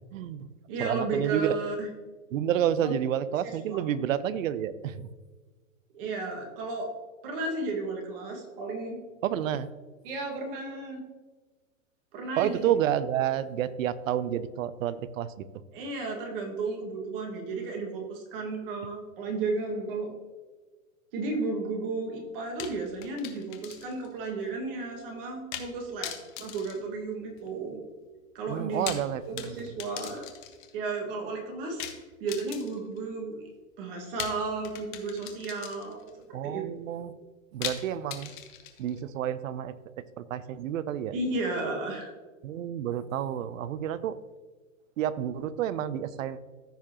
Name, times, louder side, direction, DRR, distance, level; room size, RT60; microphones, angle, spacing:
voice 1, 0.1-0.5 0.8-1.6 2.3-5.1 9.2-9.7 12.4-15.6 28.5-29.6 36.3-37.1 37.5-38.3 38.8-41.1 42.4-44.2 45.0-46.4, right 10 dB, 70° right, 15 dB, 0.7 m, -30 dB
voice 2, 0.7-1.9 2.8-2.9 3.7-3.8 5.9-6.9 7.2-9.0 10.0-11.0 12.1-12.7 15.7-20.1 21.1-26.1 26.4-27.8 28.3-28.9 29.5-30.3 30.7-31.9 32.2-33.5 33.8-36.6 41.1-42.1, right 3 dB, 45° right, 1 dB, 1.9 m, -33 dB
sound 1, 22.6-24.1 24.4-24.5 25.5-25.7 26.0-27.6 28.6-30.7 31.8-33.0 34.2-36.1 37.6-39.0, left 10 dB, 35° left, 0.9 m, -40 dB
14.0 x 4.9 x 2.9 m, 1.3 s
hypercardioid pair, 155°, 41 cm